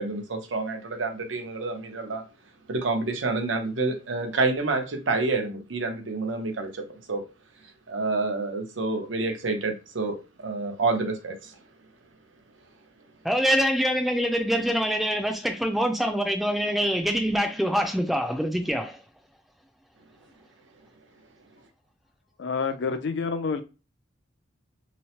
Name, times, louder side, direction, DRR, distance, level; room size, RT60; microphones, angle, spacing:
voice 1, 0.0-2.2 2.7-7.2 7.9-11.5, right 3 dB, 90° right, 0.7 m, -28 dB
voice 2, 13.2-19.0, equal, ahead, 0.3 m, -25 dB
voice 3, 22.4-23.6, left 5 dB, 65° left, 0.4 m, -28 dB
2.9 x 2.0 x 2.8 m
head